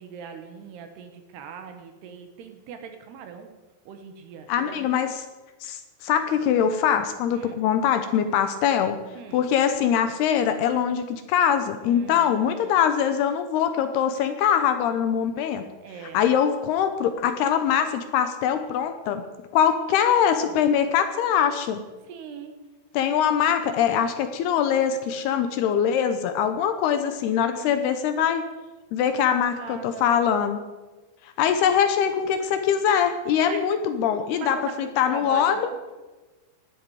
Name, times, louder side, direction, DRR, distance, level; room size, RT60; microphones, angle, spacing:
voice 1, 0.0-3.5 3.9-5.0 7.3-7.6 9.1-9.4 11.9-12.7 15.8-16.2 19.6-19.7 20.4-20.5 22.1-22.5 27.2-27.8 28.9-30.1 31.4-31.5 33.5-33.8 34.4-35.9, right 6 dB, 70° right, 7 dB, 3.2 m, -40 dB
voice 2, 4.5-5.2 5.6-9.0 9.3-15.6 16.1-19.2 19.5-21.8 22.9-28.4 28.9-30.6 31.4-35.7, left 8 dB, 75° left, 9 dB, 2.7 m, -23 dB
17.0 x 12.0 x 4.9 m, 1.2 s
omnidirectional pair, 5.2 m